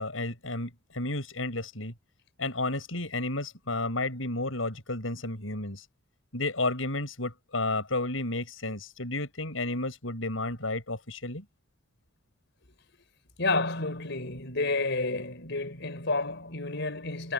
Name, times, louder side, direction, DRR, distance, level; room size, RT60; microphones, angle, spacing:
voice 1, 0.0-1.9 2.4-5.9 6.3-11.4, left 2 dB, 90° left, 7.3 m, -32 dB
voice 2, 13.4-17.3, left 3 dB, 65° left, 5.8 m, -30 dB
head